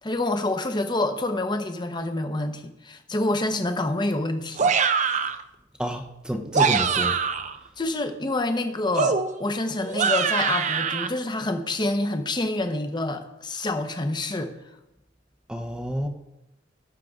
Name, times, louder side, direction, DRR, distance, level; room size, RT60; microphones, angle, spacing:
voice 1, 0.0-4.7 7.8-14.5, left 2 dB, 25° left, 7 dB, 0.9 m, -27 dB
sound 1, 4.6-5.4 6.4-7.6 9.0-11.1, right 6 dB, 40° right, 0.5 m, -24 dB
voice 2, 5.8-7.2 15.5-16.1, equal, 5° right, 3 dB, 0.7 m, -29 dB
17.0 x 6.7 x 3.6 m, 0.92 s
head